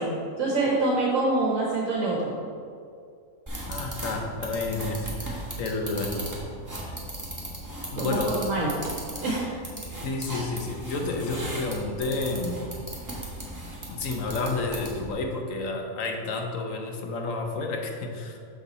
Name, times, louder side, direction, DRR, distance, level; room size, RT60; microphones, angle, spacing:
voice 1, 0.0-2.4 7.9-8.7 9.2-9.5, right 2 dB, 70° right, -3 dB, 1.3 m, -26 dB
sound 1, 3.5-15.1, right 1 dB, 15° right, 1.4 m, -37 dB
voice 2, 3.7-6.2 7.9-8.4 10.0-12.7 13.9-18.4, left 3 dB, 70° left, 3 dB, 1.2 m, -30 dB
6.8 x 6.6 x 4.1 m, 2.3 s
omnidirectional pair, 1.5 m